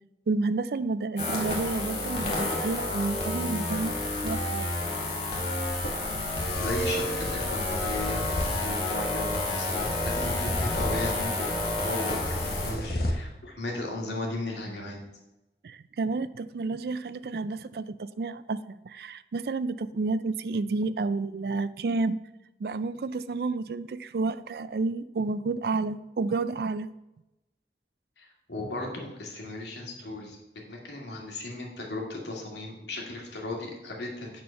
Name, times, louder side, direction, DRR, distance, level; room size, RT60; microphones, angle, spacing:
voice 1, 0.3-4.8 15.6-22.2 22.6-26.9, right 3 dB, 60° right, 15 dB, 0.4 m, -30 dB
sound 1, 1.2-12.7, left 2 dB, 35° left, 2.0 m, -30 dB
sound 2, 5.6-13.1, left 1 dB, 55° left, 1.1 m, -35 dB
voice 2, 6.6-8.3 8.6-15.0 28.2-30.4 30.7-34.4, left 2 dB, 80° left, 0 dB, 2.2 m, -36 dB
9.4 x 4.5 x 5.7 m, 0.94 s
head